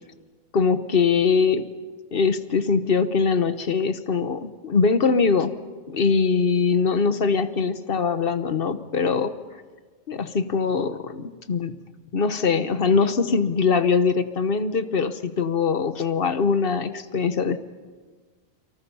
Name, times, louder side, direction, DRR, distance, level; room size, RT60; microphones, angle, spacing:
voice 1, 0.5-1.6 2.1-5.5 5.9-9.3 10.1-11.7 12.1-17.6, left 5 dB, 55° left, 11 dB, 1.2 m, -22 dB
30.0 x 24.0 x 5.6 m, 1.5 s
omnidirectional pair, 1.2 m